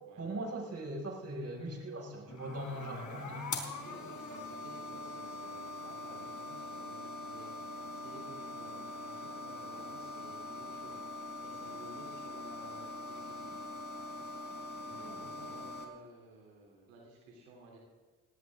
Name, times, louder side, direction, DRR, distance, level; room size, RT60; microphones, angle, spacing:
voice 1, 0.2-3.7 14.9-15.1, right 1 dB, 40° right, 0 dB, 5.6 m, -40 dB
sound 1, 2.3-15.8, left 2 dB, 50° left, 4.2 m, -43 dB
voice 2, 3.8-13.7 14.0-14.7 14.9-17.8, right 2 dB, 90° right, -2 dB, 3.3 m, -55 dB
19.0 x 18.0 x 3.6 m, 1.4 s
hypercardioid pair, 55°, 39 cm